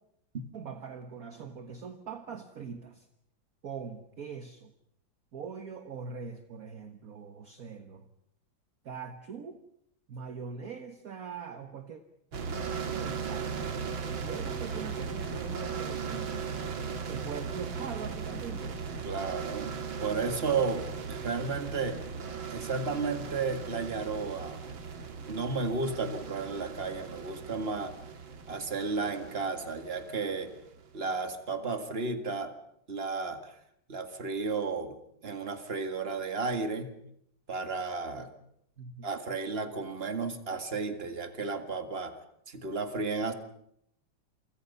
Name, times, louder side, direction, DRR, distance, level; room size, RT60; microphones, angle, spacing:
voice 1, 0.5-3.1 3.6-4.7 5.3-8.1 8.8-9.6 10.1-12.0 12.7-13.7 14.1-16.4 17.0-18.8 38.8-39.1, right 6 dB, 50° right, 8 dB, 1.6 m, -42 dB
sound 1, 12.3-31.0, right 6 dB, 85° right, 2.7 m, -38 dB
voice 2, 19.0-22.0 22.5-24.6 25.3-27.9 28.5-30.5 30.9-32.5 32.9-33.6 33.9-35.0 35.2-36.9 37.5-38.3 39.0-42.2 42.5-43.3, right 4 dB, 30° right, 7 dB, 2.0 m, -33 dB
28.5 x 24.5 x 5.5 m, 0.75 s
omnidirectional pair, 2.1 m